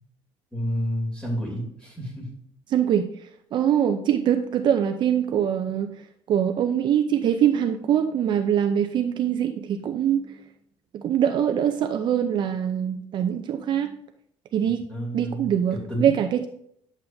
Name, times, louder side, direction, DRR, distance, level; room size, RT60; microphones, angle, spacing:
voice 1, 0.5-2.3 14.9-15.5 15.9-16.1, equal, 10° left, -3 dB, 2.9 m, -29 dB
voice 2, 2.7-3.1 3.5-6.0 6.3-10.4 10.9-13.9 14.5-14.8 15.1-16.5, right 9 dB, 45° right, 7 dB, 0.5 m, -23 dB
10.5 x 7.2 x 2.7 m, 0.70 s
cardioid pair, 145°, 11 cm